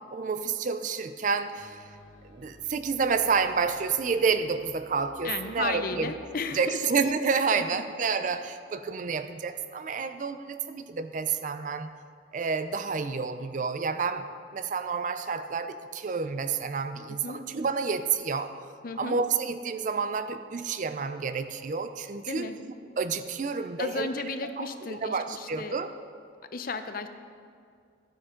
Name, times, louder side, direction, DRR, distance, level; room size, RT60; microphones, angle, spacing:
voice 1, 0.1-1.8 2.3-6.1 6.5-11.9 12.3-14.3 14.5-18.6 19.0-22.5 23.0-24.1 24.6-25.9, right 5 dB, 45° right, 10 dB, 0.4 m, -29 dB
sound 1, 1.1-6.2, left 1 dB, 90° left, 3.0 m, -54 dB
voice 2, 5.2-6.8 7.5-7.8 17.1-17.4 18.8-19.2 22.3-22.6 23.8-25.8 26.5-27.1, left 4 dB, 50° left, 9 dB, 0.6 m, -34 dB
12.5 x 9.5 x 3.8 m, 2.3 s
head